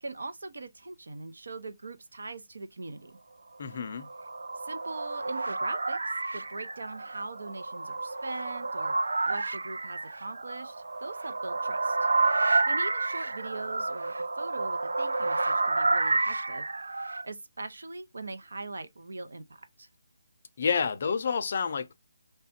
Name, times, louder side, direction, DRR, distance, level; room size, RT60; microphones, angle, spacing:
voice 1, 0.0-3.2 4.6-8.9 9.3-12.0 12.7-16.7 17.2-19.9, right 3 dB, 65° right, 0.9 m, -41 dB
voice 2, 3.6-4.1 20.6-21.9, left 6 dB, 35° left, 0.5 m, -29 dB
sound 1, 3.8-17.2, right 3 dB, 90° right, 0.4 m, -30 dB
3.3 x 2.4 x 4.2 m
hypercardioid pair, 175°, 0 cm